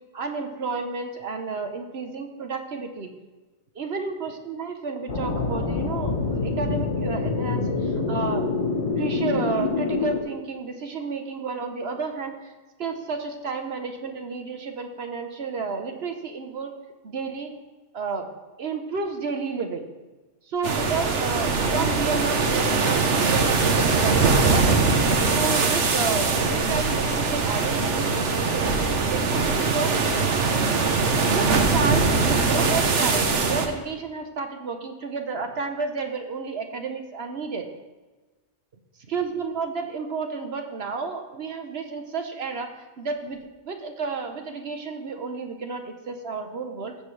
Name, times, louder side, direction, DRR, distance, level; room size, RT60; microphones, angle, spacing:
voice 1, 0.1-3.1 3.7-8.5 9.0-12.5 12.8-16.7 17.0-17.5 17.9-18.3 18.6-19.8 20.5-29.4 29.7-30.0 31.3-37.7 39.1-43.4 43.6-47.0, right 4 dB, 65° right, 5 dB, 1.2 m, -31 dB
sound 1, 5.1-10.2, left 3 dB, 85° left, 1.4 m, -26 dB
sound 2, 20.6-33.7, right 4 dB, 90° right, 1.3 m, -22 dB
15.0 x 7.9 x 3.3 m, 1.2 s
omnidirectional pair, 1.2 m